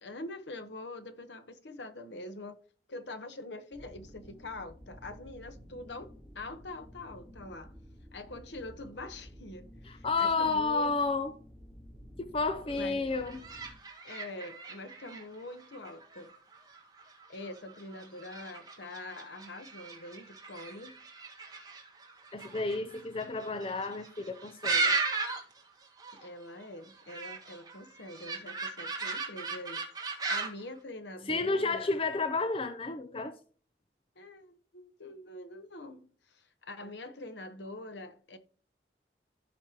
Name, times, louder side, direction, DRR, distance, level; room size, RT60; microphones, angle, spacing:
voice 1, 0.0-2.6 2.9-7.7 8.1-11.0 12.6-13.1 14.0-16.3 17.3-21.0 26.1-29.8 30.3-31.9 34.2-38.4, left 2 dB, 80° left, 1.1 m, -44 dB
sound 1, 3.7-13.7, equal, 5° left, 3.6 m, -52 dB
voice 2, 9.9-11.3 12.3-13.4 22.3-24.9 31.3-33.3, left 3 dB, 30° left, 0.5 m, -31 dB
sound 2, 13.1-25.6 25.8-26.3 26.6-30.6, right 4 dB, 20° right, 1.6 m, -37 dB
15.5 x 5.2 x 2.9 m
head